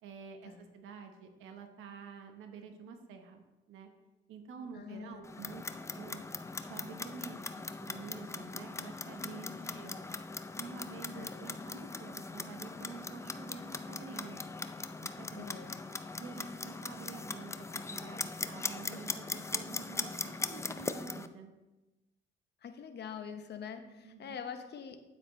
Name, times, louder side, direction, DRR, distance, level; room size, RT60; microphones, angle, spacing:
voice 1, 0.0-3.9 4.3-6.2 6.6-10.1 10.6-14.4 15.0-15.6 16.2-21.5 24.0-24.4, right 5 dB, 90° right, 6 dB, 1.0 m, -49 dB
voice 2, 4.7-5.2 9.2-9.8 11.2-11.4 15.4-15.8 22.6-25.0, left 7 dB, 60° left, 8 dB, 0.9 m, -45 dB
Clock, 5.2-21.3, left 3 dB, 15° left, 0.4 m, -40 dB
8.9 x 8.2 x 3.1 m, 1.1 s
cardioid pair, 90°, 20 cm